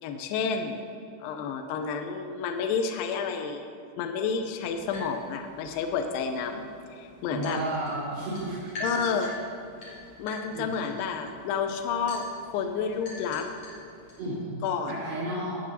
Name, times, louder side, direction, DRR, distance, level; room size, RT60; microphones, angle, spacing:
voice 1, 0.0-0.8 1.2-3.7 4.0-6.7 6.9-7.6 8.8-9.3 10.2-12.3 12.5-13.5 14.6-14.9, left 6 dB, 80° left, 5 dB, 2.3 m, -30 dB
sound 1, 4.5-14.3, left 1 dB, 45° left, 3.7 m, -44 dB
voice 2, 7.3-8.7 10.5-10.7 14.2-15.6, right 1 dB, 65° right, -11 dB, 4.6 m, -32 dB
17.0 x 8.6 x 2.8 m, 2.5 s
omnidirectional pair, 4.2 m